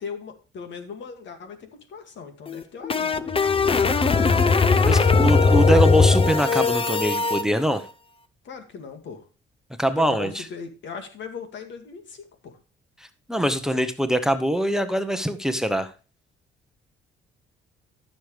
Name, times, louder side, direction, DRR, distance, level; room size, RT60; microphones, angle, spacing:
voice 1, 0.0-3.4 8.4-9.3 9.9-12.6, left 5 dB, 70° left, 6 dB, 2.2 m, -38 dB
sound 1, 2.5-7.4, left 4 dB, 25° left, 0.7 m, -19 dB
voice 2, 4.8-7.8 9.8-10.4 13.3-15.9, right 1 dB, 5° right, 11 dB, 0.9 m, -23 dB
14.0 x 6.5 x 3.3 m, 0.35 s
cardioid pair, 90°, 20 cm